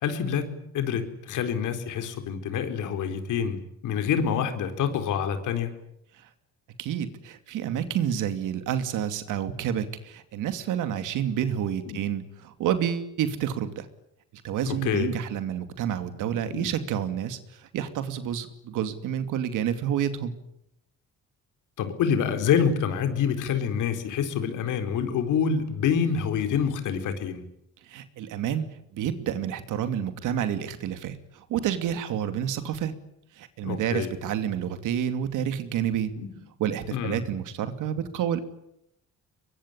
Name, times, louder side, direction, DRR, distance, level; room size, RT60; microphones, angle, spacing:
voice 1, 0.0-3.6 3.8-5.7 11.9-12.0 14.6-15.1 16.5-16.7 21.8-27.4 33.6-34.2 36.2-36.3 36.9-37.2, left 7 dB, 85° left, 7 dB, 4.3 m, -27 dB
voice 2, 6.8-13.9 14.3-20.3 27.8-32.9 33.4-36.1 36.6-38.4, right 9 dB, 90° right, 10 dB, 2.6 m, -29 dB
23.0 x 23.0 x 9.9 m, 0.79 s
cardioid pair, 90°, 30 cm